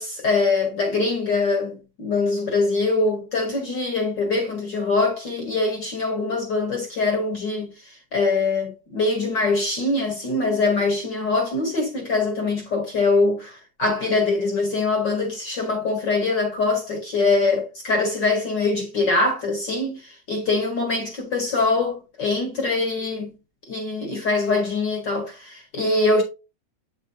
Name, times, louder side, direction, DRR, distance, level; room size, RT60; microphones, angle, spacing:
voice 1, 0.0-13.5 13.8-23.3 23.7-26.2, left 3 dB, 45° left, 1.5 m, -23 dB
8.2 x 5.4 x 2.8 m
omnidirectional pair, 3.9 m